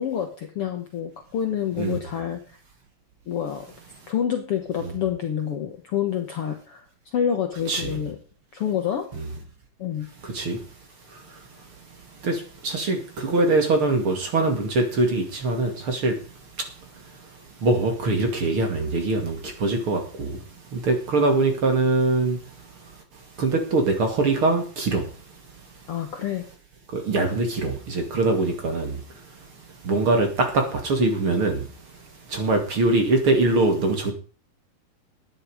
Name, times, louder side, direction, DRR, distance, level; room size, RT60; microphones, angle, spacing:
voice 1, 0.0-2.4 3.3-3.7 4.1-8.2 8.5-9.1 9.8-10.1 25.9-26.5, left 9 dB, 90° left, 1.2 m, -28 dB
voice 2, 10.2-10.6 11.1-11.7 12.2-20.4 20.7-23.0 23.4-25.4 26.9-29.5 29.8-34.1, right 2 dB, 40° right, 2.6 m, -24 dB
13.5 x 9.5 x 4.9 m
omnidirectional pair, 4.4 m